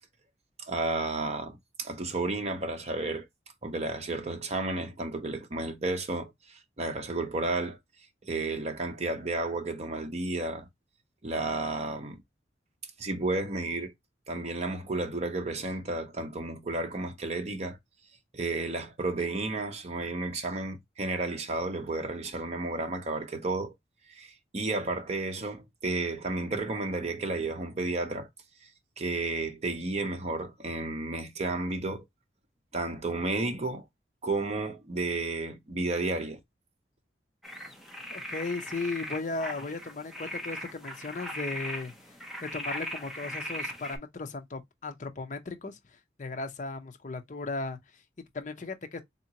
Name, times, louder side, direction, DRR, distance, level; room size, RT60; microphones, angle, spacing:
voice 1, 0.6-3.3 3.6-7.8 8.2-10.7 11.2-12.2 13.0-13.9 14.3-17.8 18.3-23.7 24.1-28.3 29.0-32.0 32.7-33.9 34.2-36.4, right 2 dB, 40° right, 0.7 m, -32 dB
sound 1, 37.4-44.0, equal, ahead, 0.7 m, -39 dB
voice 2, 38.1-41.9 42.4-47.8 48.3-49.0, left 3 dB, 45° left, 0.6 m, -36 dB
3.5 x 2.7 x 2.8 m
head